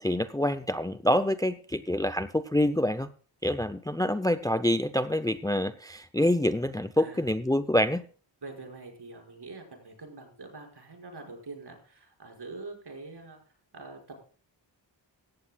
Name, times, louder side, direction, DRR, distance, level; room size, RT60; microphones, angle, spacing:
voice 1, 0.0-3.1 3.4-8.0, left 1 dB, 10° left, 13 dB, 0.6 m, -26 dB
voice 2, 7.0-7.3 8.4-13.4 13.7-14.2, right 3 dB, 60° right, 2 dB, 5.7 m, -44 dB
16.5 x 14.5 x 2.3 m, 0.41 s
wide cardioid pair, 105°, 44 cm